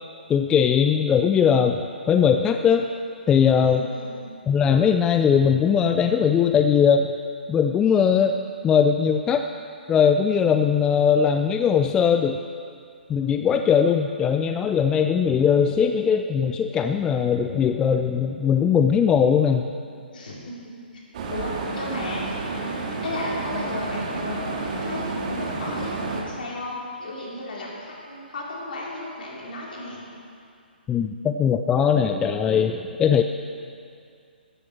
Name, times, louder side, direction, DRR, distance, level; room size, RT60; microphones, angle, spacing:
voice 1, 0.3-2.9 3.3-3.9 4.5-7.1 7.5-8.4 8.6-9.5 9.9-12.4 13.1-19.7 30.9-33.2, left 7 dB, 10° left, 6 dB, 0.4 m, -20 dB
voice 2, 3.6-4.3 20.1-20.6 21.3-22.3 23.0-30.0, left 2 dB, 60° left, -4 dB, 4.3 m, -34 dB
sound 1, 21.1-26.2, right 3 dB, 40° right, 2.1 m, -30 dB
15.0 x 13.5 x 4.5 m, 2.3 s
figure-of-eight pair, 130°, 6 cm